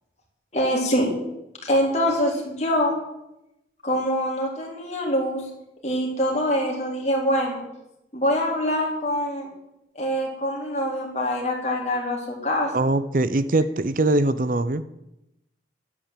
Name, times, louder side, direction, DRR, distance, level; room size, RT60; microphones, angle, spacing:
voice 1, 0.5-1.1 1.6-3.0 3.8-5.4 5.8-7.6 8.1-9.5 10.0-12.7, equal, 40° left, -1 dB, 3.9 m, -24 dB
voice 2, 12.7-14.8, right 2 dB, 50° right, 14 dB, 0.6 m, -22 dB
12.0 x 9.7 x 9.1 m, 0.89 s
head